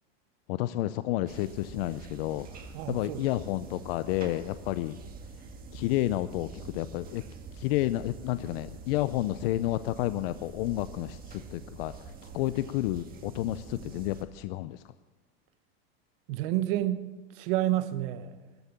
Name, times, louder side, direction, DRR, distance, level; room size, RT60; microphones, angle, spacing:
voice 1, 0.5-5.0 5.7-7.2 7.5-12.0 12.2-14.8, left 15 dB, 70° left, 0.6 m, -31 dB
sound 1, 1.3-14.2, right 5 dB, 30° right, 1.8 m, -46 dB
voice 2, 2.7-3.3 16.3-17.0 17.3-18.4, right 14 dB, 65° right, 1.1 m, -29 dB
14.0 x 11.5 x 7.3 m
supercardioid pair, 135°, 31 cm